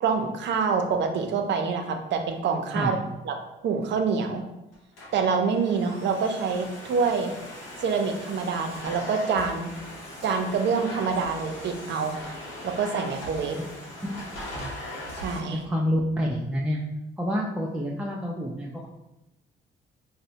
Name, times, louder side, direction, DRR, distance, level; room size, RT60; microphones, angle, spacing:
voice 1, 0.0-3.0 3.2-3.3 3.6-4.4 5.1-7.3 7.8-9.7 10.2-12.2 12.6-13.6 15.1-15.6, right 5 dB, 65° right, 5 dB, 0.5 m, -26 dB
Domestic sounds home sounds, 4.7-15.4, left 1 dB, 90° left, 0.8 m, -40 dB
voice 2, 15.5-16.8 17.2-18.9, equal, 5° right, -3 dB, 0.4 m, -28 dB
4.0 x 2.1 x 2.7 m, 0.93 s
cardioid pair, 90°, 20 cm